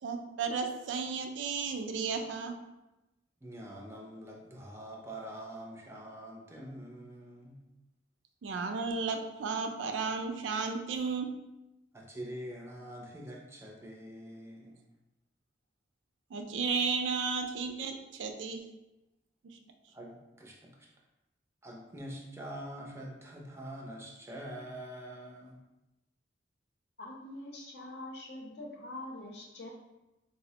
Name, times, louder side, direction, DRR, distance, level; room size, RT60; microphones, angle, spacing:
voice 1, 0.0-2.5 8.4-11.3 16.3-18.6, right 5 dB, 85° right, 5 dB, 0.4 m, -33 dB
voice 2, 3.4-7.6 11.9-14.9 19.9-20.9 21.6-25.6, right 1 dB, 15° right, -1 dB, 0.4 m, -45 dB
voice 3, 27.0-29.7, left 1 dB, 65° left, -1 dB, 0.7 m, -44 dB
4.0 x 2.0 x 2.8 m, 0.97 s
head